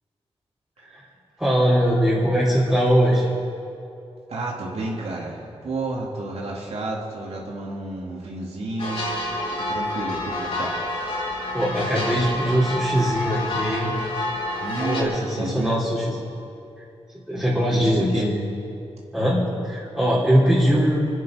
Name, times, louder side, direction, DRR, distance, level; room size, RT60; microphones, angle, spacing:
voice 1, 1.4-3.3 11.5-13.9 14.8-16.1 17.3-18.5 19.1-21.0, equal, 10° right, -10 dB, 3.5 m, -21 dB
voice 2, 4.3-9.0 9.6-10.7 14.6-15.8 17.7-18.2, right 2 dB, 75° right, -3 dB, 2.9 m, -31 dB
sound 1, 8.8-15.0, left 1 dB, 60° left, 3.6 m, -28 dB
27.0 x 9.7 x 5.3 m, 2.6 s
wide cardioid pair, 130°, 11 cm